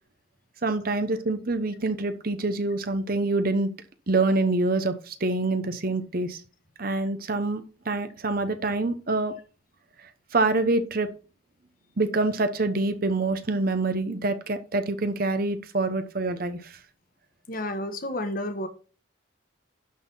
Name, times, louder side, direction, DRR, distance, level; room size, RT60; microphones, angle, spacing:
voice 1, 0.6-3.7 4.1-6.4 6.8-9.3 10.3-11.1 12.0-16.8, right 2 dB, 45° right, 0.9 m, -26 dB
voice 2, 17.5-18.7, left 1 dB, 45° left, 1.4 m, -31 dB
11.5 x 4.2 x 5.5 m
head